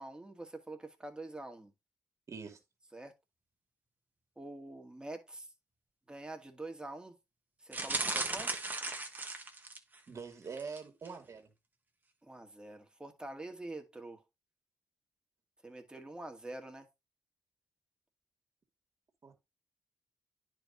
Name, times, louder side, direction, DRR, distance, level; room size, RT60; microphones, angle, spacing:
voice 1, 0.0-1.7 2.9-3.1 4.4-5.5 6.1-7.1 7.6-8.6 12.2-14.2 15.6-16.9, right 2 dB, 15° right, 2.0 m, -46 dB
voice 2, 2.3-2.6 10.1-11.5 19.2-19.4, right 5 dB, 50° right, 2.3 m, -44 dB
sound 1, 7.7-10.0 10.5-10.8 11.1-11.2, right 3 dB, 30° right, 1.6 m, -36 dB
10.0 x 4.8 x 2.6 m
cardioid pair, 70°, 6 cm